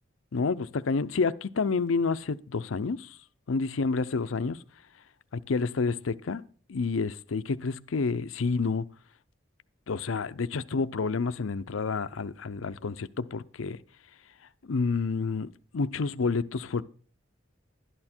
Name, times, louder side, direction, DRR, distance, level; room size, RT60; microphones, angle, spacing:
voice 1, 0.3-3.2 3.5-4.6 5.5-6.4 6.7-8.9 9.9-13.8 14.6-16.8, left 4 dB, 85° left, 0.6 m, -29 dB
11.5 x 11.0 x 4.4 m
head